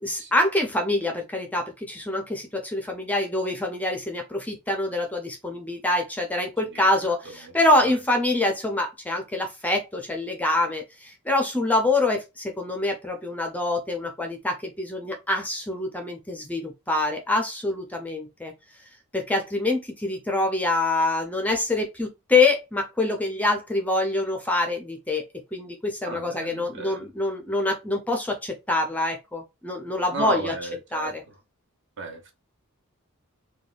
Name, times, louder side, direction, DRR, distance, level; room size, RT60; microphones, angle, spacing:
voice 1, 0.0-18.5 19.1-25.2 25.5-30.5 30.9-31.2, left 2 dB, 5° left, 0.4 m, -25 dB
voice 2, 26.0-27.1 30.1-31.1 32.0-32.4, right 3 dB, 55° right, 0.8 m, -34 dB
3.4 x 2.2 x 2.3 m
head